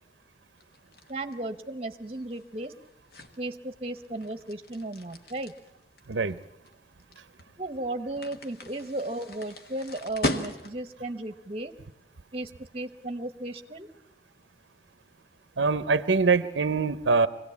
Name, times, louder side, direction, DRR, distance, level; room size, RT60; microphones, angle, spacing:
sound 1, 0.6-11.0, left 1 dB, 55° left, 1.4 m, -39 dB
voice 1, 1.1-2.7 3.4-5.5 7.6-11.7 12.3-13.9, right 2 dB, 30° right, 9 dB, 1.0 m, -35 dB
voice 2, 15.6-17.3, right 4 dB, 80° right, 14 dB, 0.7 m, -23 dB
23.5 x 17.0 x 8.4 m, 0.91 s
head